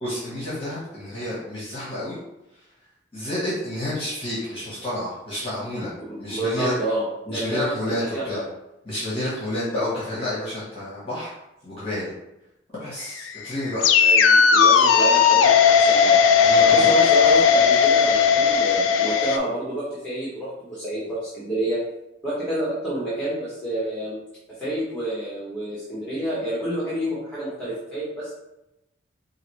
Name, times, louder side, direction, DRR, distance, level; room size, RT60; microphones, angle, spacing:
voice 1, 0.0-2.2 2.5-2.6 3.1-5.9 6.2-6.7 7.3-8.4 8.8-11.3 11.6-12.1 12.8-13.9 16.3-16.9, left 1 dB, 30° left, -8 dB, 1.3 m, -30 dB
voice 2, 6.0-7.7 8.1-8.4 14.0-16.2 16.7-21.8 22.2-24.2 24.6-28.3, right 1 dB, 5° left, -9 dB, 1.3 m, -28 dB
sound 1, 13.0-19.4, left 6 dB, 80° left, 0.4 m, -16 dB
4.8 x 2.7 x 3.1 m, 0.89 s
head